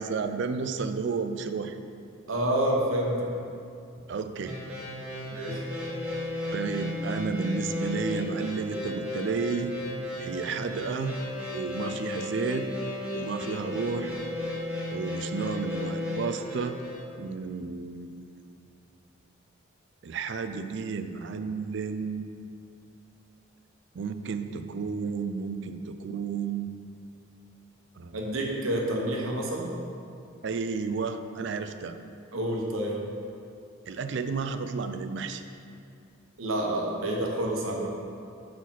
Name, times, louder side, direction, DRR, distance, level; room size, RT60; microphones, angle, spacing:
voice 1, 0.0-1.8 4.1-4.6 6.5-9.7 10.2-11.2 11.5-12.7 13.1-14.1 14.9-16.8 17.2-18.4 20.0-22.3 23.9-26.7 28.0-28.2 30.4-32.0 33.9-35.4, right 5 dB, 60° right, 9 dB, 0.4 m, -32 dB
voice 2, 2.3-3.3 5.3-5.6 28.1-29.7 32.3-33.0 36.4-37.9, right 1 dB, 85° right, -1 dB, 1.1 m, -28 dB
sound 1, 4.5-17.0, left 2 dB, 5° right, 1.7 m, -34 dB
5.9 x 4.8 x 5.5 m, 2.5 s
head